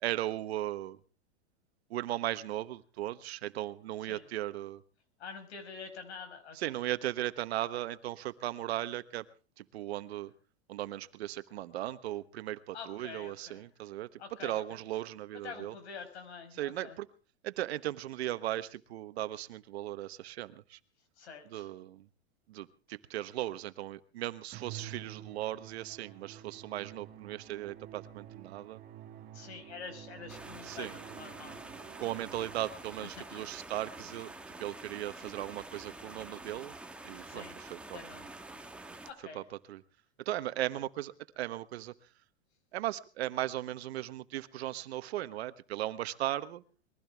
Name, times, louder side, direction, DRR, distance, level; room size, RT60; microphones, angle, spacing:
voice 1, 0.0-1.0 1.9-4.8 6.5-9.2 9.6-10.3 10.7-15.7 16.6-17.1 17.4-20.8 21.5-22.0 22.5-28.8 30.6-30.9 32.0-34.3 34.6-36.7 37.0-38.0 39.3-39.4 39.7-39.8 40.3-41.9 42.7-46.6, right 14 dB, 75° right, 13 dB, 1.2 m, -37 dB
voice 2, 5.2-6.8 12.7-13.6 14.2-14.8 15.4-17.0 21.2-21.7 29.3-31.6 33.2-33.4 37.2-37.6 37.9-38.3 39.1-39.4, left 5 dB, 80° left, 7 dB, 5.2 m, -46 dB
Musical instrument, 24.5-33.0, right 11 dB, 30° right, 1.6 m, -50 dB
sound 1, 30.3-39.1, right 2 dB, 5° right, 1.3 m, -47 dB
22.0 x 15.5 x 3.5 m, 0.37 s
supercardioid pair, 140°, 32 cm